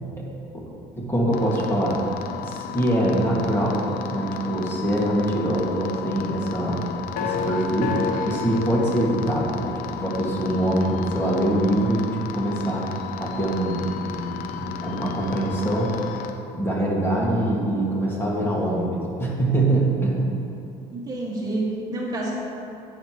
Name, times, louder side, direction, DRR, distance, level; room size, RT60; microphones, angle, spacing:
voice 1, 1.0-1.9 2.4-3.8 4.1-6.8 7.2-8.0 8.2-9.7 10.0-12.8 13.2-15.9 16.5-20.2, right 1 dB, 15° left, -4 dB, 2.1 m, -24 dB
sound 1, 1.3-16.3, left 7 dB, 75° left, 0.8 m, -33 dB
voice 2, 20.9-22.3, right 2 dB, 25° right, -4 dB, 1.9 m, -28 dB
11.0 x 9.5 x 3.1 m, 2.8 s
cardioid pair, 105°, 14 cm